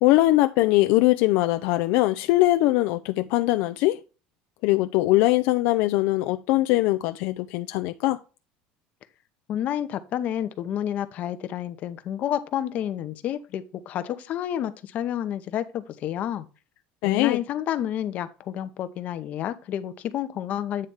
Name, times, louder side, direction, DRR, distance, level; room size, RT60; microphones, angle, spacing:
voice 1, 0.0-4.0 4.6-8.2 17.0-17.4, left 18 dB, 70° left, 0.4 m, -21 dB
voice 2, 9.5-16.5 17.0-20.9, left 10 dB, 45° left, 0.7 m, -30 dB
8.7 x 3.3 x 5.4 m
cardioid pair, 140°, 4 cm